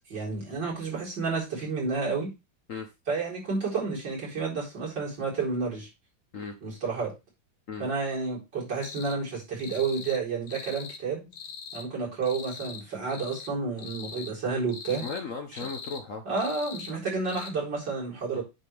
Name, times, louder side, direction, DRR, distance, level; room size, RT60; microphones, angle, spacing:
voice 1, 0.1-2.3 3.1-5.9 6.6-7.1 7.8-11.3 11.7-15.0 15.5-15.6 16.2-18.4, right 4 dB, 65° right, -5 dB, 4.5 m, -30 dB
sound 1, 8.8-9.2 9.6-10.2 10.5-11.0 11.3-11.9 12.2-12.8 13.1-13.5 13.8-14.3 14.7-15.2 15.5-16.0 16.4-16.9 17.3-17.5, left 5 dB, 85° left, 1.8 m, -42 dB
voice 2, 14.9-16.2 18.3-18.4, left 5 dB, 55° left, 5 dB, 1.0 m, -36 dB
8.6 x 6.4 x 3.3 m, 0.24 s
omnidirectional pair, 2.1 m